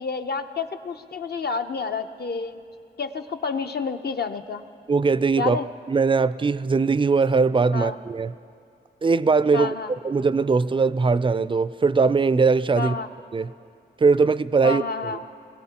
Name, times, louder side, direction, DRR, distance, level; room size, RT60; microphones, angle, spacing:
voice 1, 0.0-2.6 3.0-4.6 5.4-5.7 7.7-8.0 9.5-9.9 12.8-13.1 14.6-15.2, left 4 dB, 60° left, 7 dB, 0.7 m, -29 dB
voice 2, 4.9-5.6 5.9-8.3 9.0-9.7 10.0-12.9 13.3-13.5 14.0-14.8, right 4 dB, 25° right, 16 dB, 0.4 m, -20 dB
22.0 x 16.5 x 2.9 m, 2.5 s
cardioid pair, 55°, 19 cm